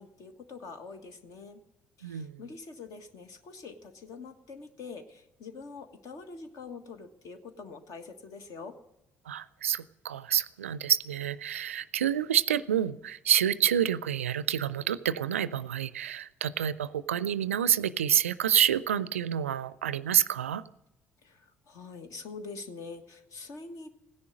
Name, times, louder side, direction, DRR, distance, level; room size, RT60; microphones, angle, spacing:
voice 1, 0.0-1.6 2.0-8.7 21.2-23.9, left 4 dB, 55° left, 8 dB, 1.5 m, -45 dB
voice 2, 2.0-2.4 9.3-20.6, right 10 dB, 80° right, 18 dB, 0.4 m, -28 dB
16.5 x 10.5 x 6.4 m, 0.92 s
figure-of-eight pair, 50°, 7 cm